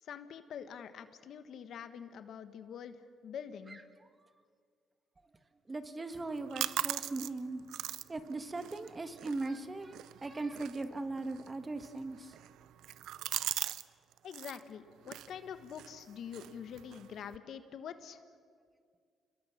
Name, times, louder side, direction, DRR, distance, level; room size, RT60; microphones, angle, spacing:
voice 1, 0.0-3.0 3.2-3.8 14.2-18.2, left 8 dB, 70° left, 10 dB, 1.4 m, -45 dB
voice 2, 5.7-7.6 8.1-9.9 10.2-12.4, right 3 dB, 25° right, 9 dB, 1.5 m, -39 dB
sound 1, 6.1-13.9 14.1-14.6 15.0-17.4, right 12 dB, 85° right, 0.5 m, -41 dB
28.5 x 21.0 x 7.3 m, 2.1 s
cardioid pair, 90°, 0 cm